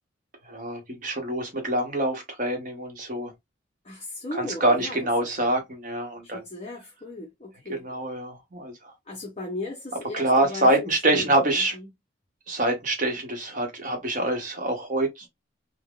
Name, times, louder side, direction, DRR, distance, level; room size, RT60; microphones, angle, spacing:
voice 1, 0.4-3.3 4.3-6.4 7.7-8.9 10.1-11.8 12.5-15.3, right 1 dB, 40° right, 0.9 m, -25 dB
voice 2, 3.8-5.0 6.2-7.8 9.1-11.9, left 2 dB, 30° left, 0.6 m, -37 dB
3.5 x 2.1 x 2.3 m
head